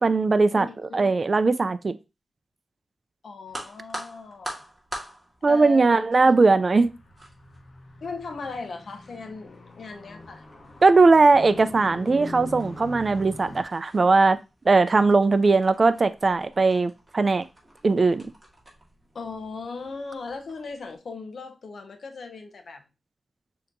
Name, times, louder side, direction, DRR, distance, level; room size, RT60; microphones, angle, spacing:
voice 1, 0.0-0.7 0.9-2.0 5.4-6.9 10.8-14.4 14.7-17.4 17.8-18.3, right 3 dB, 45° right, 0.4 m, -19 dB
voice 2, 0.5-1.1 3.2-4.6 5.5-6.3 8.0-10.4 19.1-22.8, left 4 dB, 70° left, 0.7 m, -38 dB
sound 1, 3.5-21.0, right 1 dB, 15° right, 2.0 m, -46 dB
Car, 6.8-13.6, left 2 dB, 55° left, 1.0 m, -43 dB
6.4 x 2.9 x 2.6 m
cardioid pair, 65°, 0 cm